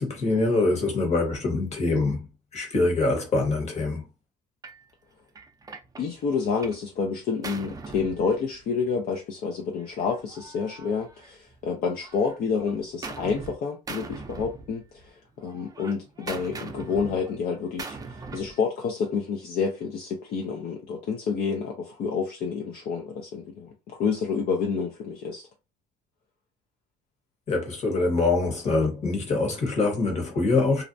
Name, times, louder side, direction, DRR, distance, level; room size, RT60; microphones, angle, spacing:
voice 1, 0.0-2.3 2.5-4.1 27.5-30.8, left 3 dB, 40° left, 1.1 m, -24 dB
Gunshot gunfire, 4.6-4.8 5.4-6.9 7.1-8.9 9.8-11.6 12.0-13.6 13.9-15.1 15.4-18.6, right 4 dB, 20° right, 0.5 m, -41 dB
voice 2, 6.0-25.5, left 5 dB, 65° left, 0.5 m, -29 dB
2.4 x 2.1 x 2.6 m
cardioid pair, 110°, 17 cm